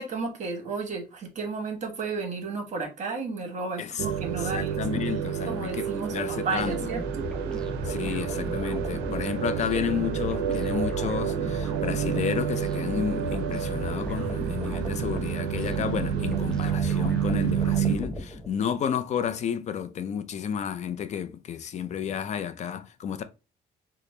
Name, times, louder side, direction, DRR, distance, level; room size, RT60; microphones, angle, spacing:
voice 1, 0.0-4.8 5.5-7.3, right 4 dB, 45° right, 1.1 m, -33 dB
sound 1, 4.0-18.0, right 9 dB, 90° right, 0.4 m, -29 dB
voice 2, 4.4-6.9 7.8-23.2, left 8 dB, 45° left, 0.4 m, -31 dB
sound 2, 6.6-18.8, equal, 5° left, 0.7 m, -36 dB
4.1 x 2.1 x 3.2 m
cardioid pair, 110°, 17 cm